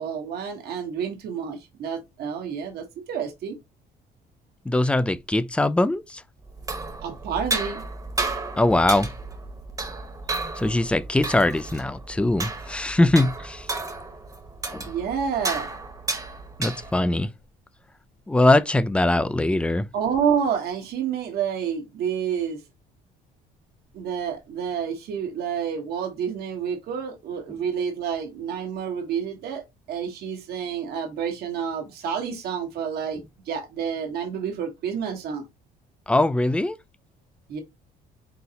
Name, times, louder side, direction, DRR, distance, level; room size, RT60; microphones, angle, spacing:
voice 1, 0.0-3.6 7.0-7.8 14.9-15.7 19.9-22.6 23.9-35.4 37.5-37.6, right 7 dB, 70° right, 1.2 m, -29 dB
voice 2, 4.7-6.2 8.5-9.1 10.6-13.7 14.7-14.8 16.6-17.3 18.3-19.9 36.1-36.8, left 2 dB, 5° left, 0.3 m, -21 dB
sound 1, 6.5-17.2, right 3 dB, 20° right, 1.0 m, -33 dB
3.9 x 3.9 x 2.8 m
cardioid pair, 110°, 17 cm